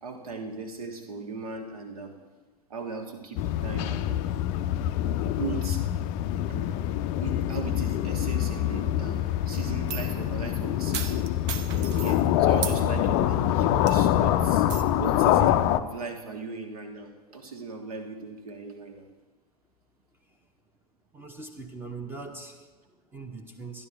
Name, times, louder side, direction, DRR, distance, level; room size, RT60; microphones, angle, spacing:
voice 1, 0.0-2.1 2.7-4.2 5.2-6.0 6.5-6.8 7.2-11.2 11.9-14.6 15.0-19.1, right 4 dB, 65° right, 5 dB, 1.5 m, -38 dB
sound 1, 3.4-15.8, left 11 dB, 35° left, 0.4 m, -25 dB
sound 2, 9.5-10.2 10.9-12.2 12.6-12.8 13.3-13.4 13.9-14.2 14.7-14.8, right 8 dB, 45° right, 0.8 m, -35 dB
voice 2, 21.1-23.9, right 3 dB, 10° right, 5 dB, 0.9 m, -41 dB
12.5 x 11.0 x 3.4 m, 1.3 s
figure-of-eight pair, 95°, 20 cm